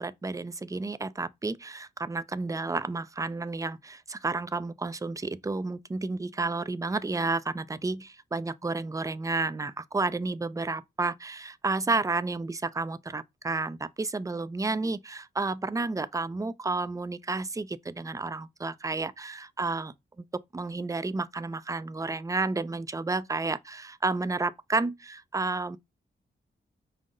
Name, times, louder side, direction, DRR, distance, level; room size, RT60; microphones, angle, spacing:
voice 1, 0.0-20.2 20.5-25.8, right 3 dB, 15° right, 0.4 m, -31 dB
5.4 x 2.1 x 3.7 m
cardioid pair, 65°, 20 cm